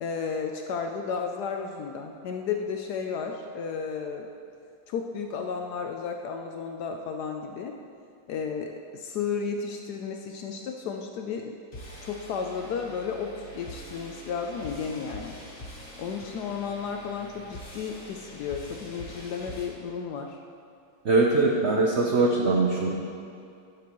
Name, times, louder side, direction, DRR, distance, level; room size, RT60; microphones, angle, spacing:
voice 1, 0.0-4.3 4.9-7.7 8.3-11.5 12.0-15.4 16.0-20.4, left 6 dB, 75° left, 3 dB, 0.9 m, -33 dB
sound 1, 11.7-19.7, equal, 40° left, 1.7 m, -44 dB
voice 2, 21.0-22.9, right 3 dB, 85° right, -1 dB, 0.6 m, -22 dB
12.0 x 6.9 x 3.0 m, 2.5 s
omnidirectional pair, 2.1 m